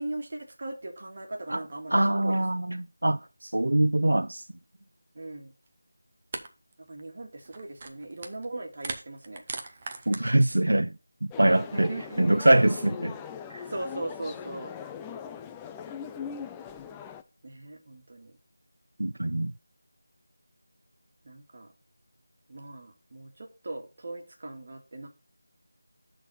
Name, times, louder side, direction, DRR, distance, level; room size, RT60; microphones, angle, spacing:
voice 1, 0.0-2.4 5.2-5.5 6.9-9.4 11.6-12.5 13.7-14.7 17.4-18.3 21.2-21.7 22.5-25.1, right 2 dB, 40° right, 1.8 m, -39 dB
voice 2, 1.9-4.4 10.1-10.9 11.2-11.9 12.2-13.1 13.5-13.6 19.0-19.5, right 1 dB, 80° right, 0.4 m, -23 dB
sound 1, 5.7-5.8 6.3-6.5 6.7-7.0 7.4-8.5 8.7-10.2, right 3 dB, 25° right, 0.7 m, -38 dB
sound 2, 11.3-17.2, left 7 dB, 10° left, 0.3 m, -40 dB
11.5 x 4.1 x 4.1 m
figure-of-eight pair, 175°, 0 cm